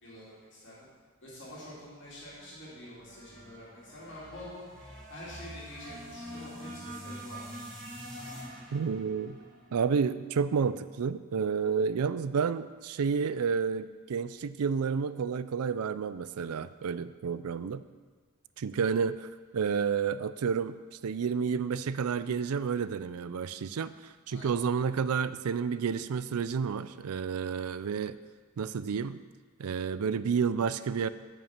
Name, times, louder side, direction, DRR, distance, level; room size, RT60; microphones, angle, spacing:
voice 1, 0.0-0.9 1.2-4.7 5.1-7.6 24.3-24.5, left 1 dB, 55° left, -7 dB, 2.9 m, -47 dB
sound 1, 2.1-10.4, equal, 5° left, 2.9 m, -46 dB
voice 2, 8.7-9.4 9.7-17.8 18.6-28.2 28.6-29.2 29.6-31.1, right 6 dB, 75° right, 14 dB, 0.4 m, -30 dB
9.3 x 5.6 x 7.3 m, 1.4 s
head